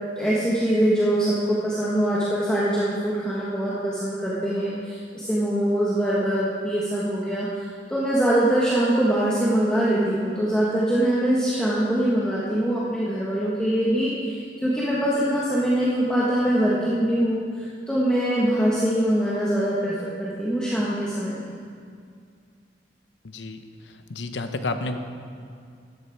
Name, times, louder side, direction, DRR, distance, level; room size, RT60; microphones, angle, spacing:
voice 1, 0.2-21.5, right 1 dB, 5° left, -8 dB, 1.3 m, -23 dB
voice 2, 23.2-23.6 24.1-25.0, left 2 dB, 85° left, 8 dB, 0.8 m, -30 dB
13.0 x 10.0 x 4.6 m, 2.3 s
head